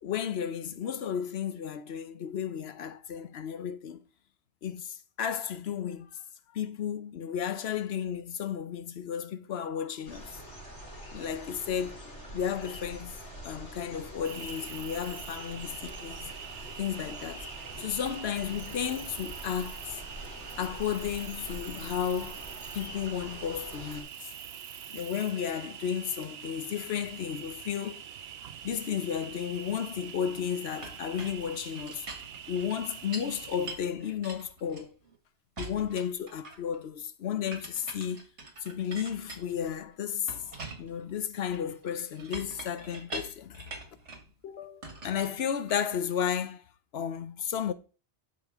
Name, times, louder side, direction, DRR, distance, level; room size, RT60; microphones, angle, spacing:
voice 1, 0.0-4.0 4.6-6.2 6.5-10.4 11.1-12.0 12.3-13.2 13.4-16.3 16.8-17.5 17.8-20.0 20.6-22.4 22.7-24.3 24.9-28.0 28.6-32.1 32.5-34.9 35.6-38.2 38.6-40.3 40.8-43.7 44.4-46.6 46.9-47.7, left 8 dB, 65° left, 1.0 m, -33 dB
sound 1, 10.0-24.0, equal, 85° left, 4.6 m, -45 dB
Cricket, 14.2-33.7, right 9 dB, 65° right, 0.9 m, -44 dB
Chink clink, 30.8-33.4 33.7-35.2 35.6-36.8 37.5-39.8 40.3-44.3 44.8-46.0, right 2 dB, 80° right, 2.2 m, -44 dB
12.5 x 5.2 x 3.6 m
omnidirectional pair, 1.2 m